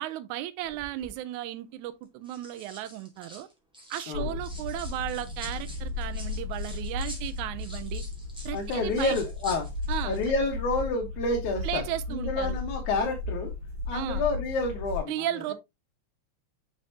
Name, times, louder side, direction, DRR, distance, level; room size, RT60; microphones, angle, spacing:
voice 1, 0.0-3.5 3.9-8.0 8.5-9.2 9.9-10.2 11.6-12.6 13.9-14.3 15.1-15.5, right 13 dB, 80° right, 2.0 m, -35 dB
sound 1, 0.6-1.1 2.0-4.1 4.4-10.3 10.6-10.8, equal, ahead, 2.4 m, -47 dB
voice 2, 4.1-4.4 8.5-9.7 10.0-11.8 12.1-13.5 13.9-15.2, left 3 dB, 80° left, 2.7 m, -29 dB
sound 2, 4.1-15.0, left 3 dB, 35° right, 3.9 m, -35 dB
6.5 x 6.4 x 2.8 m
omnidirectional pair, 3.4 m